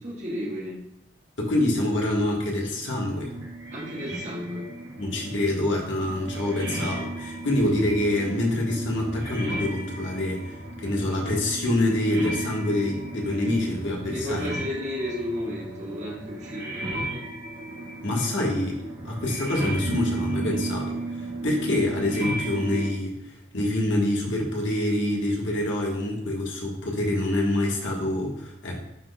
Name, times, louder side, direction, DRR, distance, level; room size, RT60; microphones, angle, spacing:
voice 1, 0.0-0.8 3.7-4.7 14.0-17.2, left 1 dB, 40° right, -3 dB, 1.5 m, -33 dB
voice 2, 1.4-3.3 5.0-10.5 10.8-14.5 18.0-28.8, left 1 dB, 85° left, -2 dB, 1.4 m, -26 dB
sound 1, 3.1-22.9, right 1 dB, 75° right, 1.4 m, -35 dB
11.0 x 4.0 x 2.3 m, 0.83 s
head